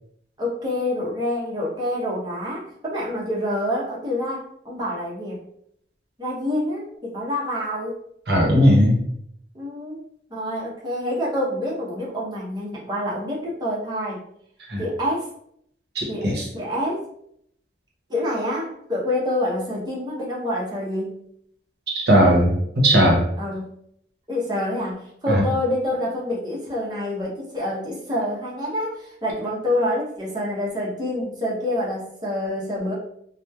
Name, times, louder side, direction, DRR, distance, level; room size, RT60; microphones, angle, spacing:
voice 1, 0.4-5.4 6.2-8.0 9.5-14.2 14.8-15.3 16.1-17.1 18.1-21.2 23.4-23.8 24.3-32.9, left 1 dB, 25° right, -5 dB, 0.7 m, -27 dB
voice 2, 8.3-9.0 14.7-14.8 15.9-16.4 21.9-22.5 22.8-23.2 25.3-25.4, equal, 65° right, -2 dB, 0.8 m, -17 dB
2.9 x 2.0 x 2.3 m, 0.70 s
head